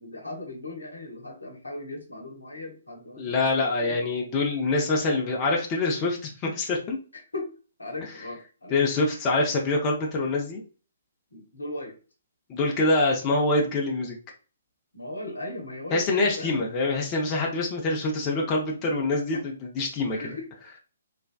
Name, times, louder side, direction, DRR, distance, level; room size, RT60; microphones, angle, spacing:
voice 1, 0.0-4.1 7.1-7.5 7.8-8.8 11.3-12.0 14.9-16.7 19.3-19.4 20.1-20.5, left 2 dB, 80° left, 3 dB, 0.8 m, -38 dB
voice 2, 3.2-7.0 8.7-10.6 12.5-14.1 15.9-20.4, left 2 dB, 25° left, -1 dB, 0.6 m, -25 dB
3.3 x 2.3 x 2.3 m, 0.36 s
figure-of-eight pair, 130°, 0 cm